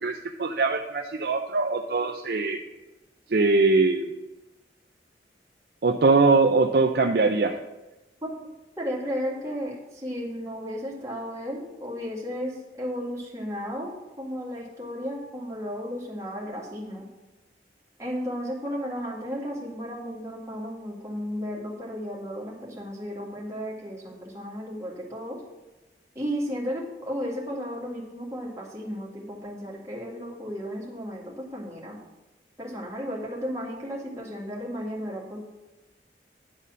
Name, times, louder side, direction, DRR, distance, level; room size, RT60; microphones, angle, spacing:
voice 1, 0.0-2.6 3.3-4.0 5.8-7.6, right 3 dB, 60° right, 4 dB, 0.5 m, -22 dB
voice 2, 8.8-13.9 14.2-17.1 18.0-25.4 26.1-32.0 32.6-35.4, equal, 15° right, -4 dB, 2.0 m, -34 dB
10.0 x 4.1 x 7.4 m, 1.1 s
head